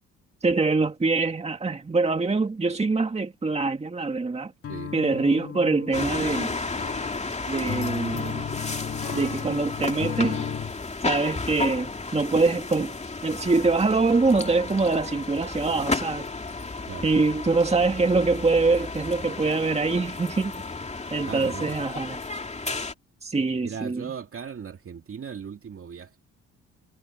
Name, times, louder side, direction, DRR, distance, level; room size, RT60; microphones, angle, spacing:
voice 1, 0.4-4.5 4.9-6.5 7.5-8.5 9.1-10.4 11.0-12.9 13.2-16.3 17.0-20.6 21.1-22.2 23.2-24.1, right 3 dB, 20° right, 1.8 m, -24 dB
sound 1, 4.6-10.8, left 8 dB, 50° left, 1.8 m, -35 dB
sound 2, 5.9-22.9, left 3 dB, 20° left, 2.7 m, -33 dB
voice 2, 21.2-21.7 23.6-26.2, right 7 dB, 45° right, 2.6 m, -37 dB
cardioid pair, 90°, 30 cm